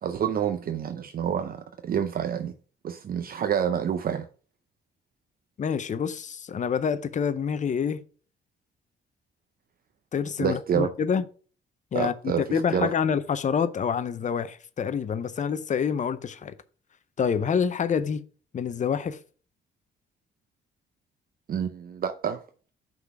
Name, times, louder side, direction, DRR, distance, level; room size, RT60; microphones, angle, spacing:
voice 1, 0.0-2.5 2.8-4.3 10.4-10.9 11.9-12.9 21.5-22.4, right 8 dB, 50° right, 0.6 m, -28 dB
voice 2, 5.6-8.0 10.1-11.2 11.9-16.5 17.2-18.2 18.5-19.2, left 7 dB, 40° left, 0.6 m, -27 dB
6.0 x 3.9 x 5.9 m
cardioid pair, 90°, 20 cm